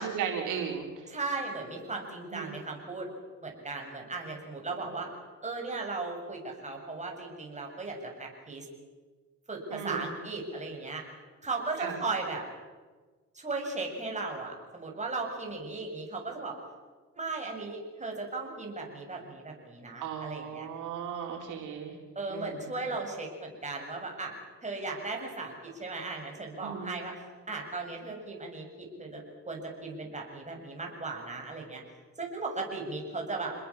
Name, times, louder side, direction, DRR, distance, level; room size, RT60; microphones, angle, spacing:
voice 1, 0.0-1.2 2.3-2.5 9.7-10.1 11.8-12.0 20.0-22.0 22.3-22.9 26.6-27.0, right 7 dB, 90° right, 1 dB, 4.4 m, -36 dB
voice 2, 1.1-3.1 3.4-5.1 5.4-8.7 9.5-11.0 11.4-12.4 13.3-16.6 17.1-20.7 22.2-24.3 24.6-29.2 29.5-31.8 32.2-33.5, right 3 dB, 25° right, 1 dB, 7.4 m, -36 dB
28.0 x 21.0 x 7.3 m, 1.4 s
cardioid pair, 90°, 30 cm